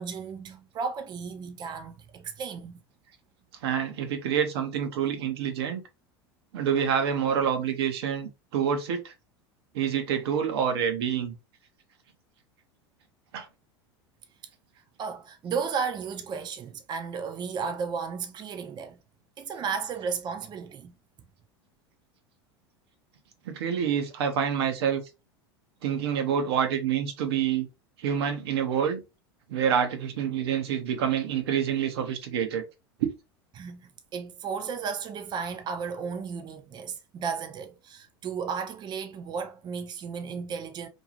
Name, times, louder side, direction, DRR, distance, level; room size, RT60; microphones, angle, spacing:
voice 1, 0.0-2.8 15.0-19.0 19.4-20.9 33.5-40.9, right 6 dB, 35° right, 0.5 m, -34 dB
voice 2, 3.6-5.8 6.5-9.1 9.7-11.3 13.3-13.5 23.5-25.0 25.8-27.7 28.0-29.0 29.5-32.6 33.0-33.1, right 8 dB, 75° right, 0.6 m, -27 dB
2.6 x 2.3 x 2.9 m
hypercardioid pair, 90°, 14 cm